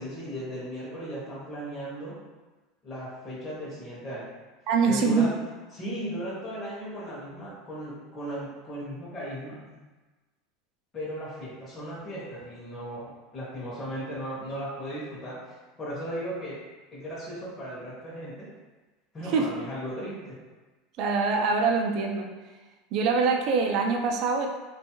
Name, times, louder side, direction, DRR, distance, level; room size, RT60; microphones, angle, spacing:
voice 1, 0.0-2.2 2.8-4.3 4.9-5.4 5.7-9.8 10.9-16.6 16.9-18.5 19.1-20.4, equal, 25° left, -7 dB, 0.8 m, -36 dB
voice 2, 4.7-5.3 19.3-19.5 21.0-22.3 22.9-24.5, right 4 dB, 55° right, 2 dB, 0.4 m, -24 dB
2.5 x 2.3 x 2.9 m, 1.2 s
supercardioid pair, 115°, 0 cm